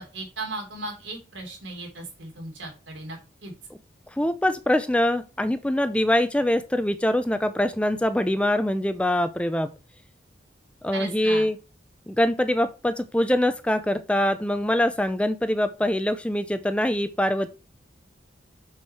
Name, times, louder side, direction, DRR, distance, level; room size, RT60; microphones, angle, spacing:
voice 1, 0.0-3.5 10.9-11.5, right 2 dB, 85° right, 2 dB, 3.3 m, -37 dB
voice 2, 4.1-9.7 10.8-11.6 12.1-17.5, left 1 dB, 5° left, 11 dB, 0.5 m, -24 dB
7.1 x 6.5 x 4.6 m, 0.31 s
head